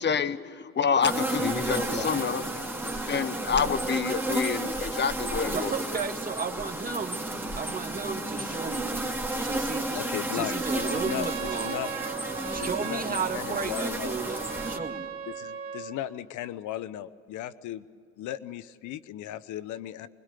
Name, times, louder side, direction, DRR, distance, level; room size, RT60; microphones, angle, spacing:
voice 1, 0.0-2.5 2.8-5.7, left 6 dB, 35° left, 14 dB, 1.1 m, -28 dB
sound 1, 1.0-14.8, right 1 dB, 5° right, 2.5 m, -32 dB
sound 2, 1.3-2.8 6.6-6.7 7.6-7.7 9.7-9.9 10.4-10.6 10.9-11.4 11.6-11.9 12.8-13.3 14.1-14.3, left 2 dB, 20° left, 1.8 m, -35 dB
voice 2, 5.5-7.2 7.6-9.1 9.4-10.0 10.3-11.8 12.5-15.1, right 5 dB, 25° right, 3 dB, 2.2 m, -34 dB
voice 3, 9.9-11.9 12.6-14.1 15.3-17.9 18.2-20.1, left 12 dB, 70° left, 15 dB, 1.0 m, -36 dB
Trumpet, 10.5-16.0, right 6 dB, 45° right, 3.0 m, -37 dB
24.0 x 21.0 x 6.9 m, 2.2 s
supercardioid pair, 80°, 31 cm